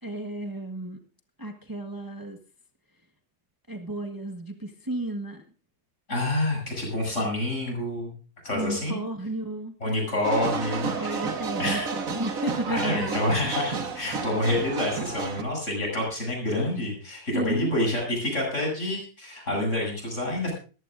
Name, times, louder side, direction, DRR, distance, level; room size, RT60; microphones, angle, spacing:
voice 1, 0.0-1.0 1.4-2.4 3.7-5.4 8.5-9.7 10.2-13.2 14.2-14.3 17.3-17.7, right 1 dB, 15° right, 4 dB, 1.3 m, -33 dB
voice 2, 6.1-8.1 8.4-9.0 9.8-11.2 11.6-11.9 12.7-20.5, left 1 dB, 50° left, -1 dB, 8.2 m, -28 dB
sound 1, 10.2-15.4, right 5 dB, 60° right, 1.9 m, -31 dB
21.5 x 15.0 x 2.6 m, 0.36 s
omnidirectional pair, 1.6 m